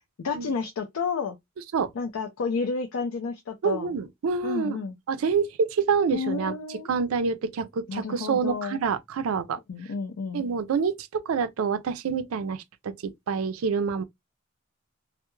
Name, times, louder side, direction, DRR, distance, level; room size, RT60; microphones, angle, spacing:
voice 1, 0.2-1.4 1.9-3.9 4.4-5.0 6.1-6.9 7.9-8.8 9.7-10.4, left 5 dB, 85° left, 0.4 m, -31 dB
voice 2, 3.6-4.8 5.1-6.6 6.9-9.6 10.3-12.9 13.3-14.0, right 5 dB, 85° right, 0.4 m, -27 dB
2.2 x 2.0 x 3.0 m
head